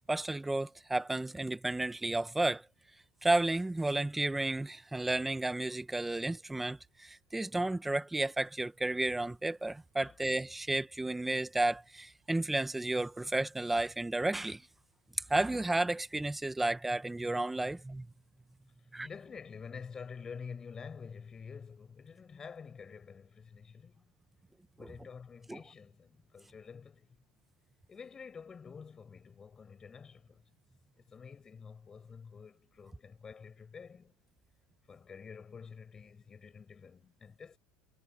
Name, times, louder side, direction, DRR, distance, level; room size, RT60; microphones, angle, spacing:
voice 1, 0.1-2.6 3.2-14.6 15.3-18.1 18.9-19.1 25.5-25.6, right 2 dB, 5° right, 0.9 m, -32 dB
voice 2, 18.8-24.0 24.8-27.1 27.9-30.4 31.0-34.1 34.9-37.6, left 6 dB, 20° left, 7.1 m, -48 dB
cardioid pair, 165°, 3 cm